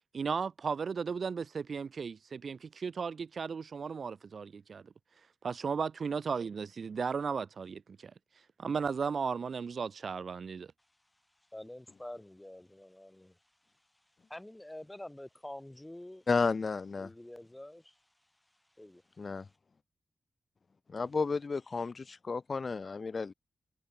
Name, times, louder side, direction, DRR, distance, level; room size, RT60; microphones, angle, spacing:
voice 1, 0.1-4.8 5.4-8.1 8.6-10.7, right 5 dB, 55° right, 0.4 m, -35 dB
voice 2, 11.5-13.4 14.3-16.2 17.0-18.0 18.8-19.0, left 1 dB, 10° left, 0.7 m, -47 dB
voice 3, 16.3-17.1 19.2-19.5 20.9-23.3, left 4 dB, 40° left, 0.4 m, -32 dB
wide cardioid pair, 130°, 0 cm